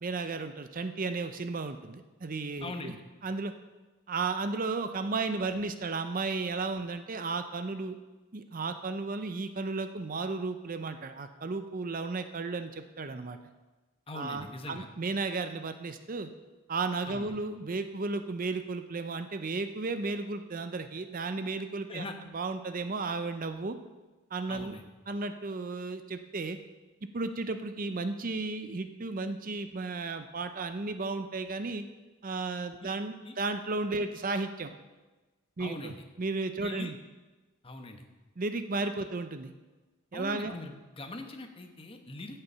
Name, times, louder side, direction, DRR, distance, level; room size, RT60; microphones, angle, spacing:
voice 1, 0.0-2.9 3.2-3.5 4.1-8.0 8.3-13.4 14.1-16.3 16.7-22.0 22.3-23.8 24.3-24.8 25.1-26.6 27.1-31.8 32.2-34.7 35.6-36.9 38.4-39.5 40.1-40.6, right 3 dB, 40° right, 9 dB, 0.5 m, -34 dB
voice 2, 2.6-3.0 14.1-14.9 17.1-17.4 21.9-22.2 24.5-24.9 32.8-32.9 33.2-33.3 35.6-36.0 36.6-36.9 37.6-38.0 40.1-42.4, left 2 dB, 25° left, 5 dB, 1.0 m, -41 dB
16.0 x 6.8 x 5.7 m, 1.2 s
head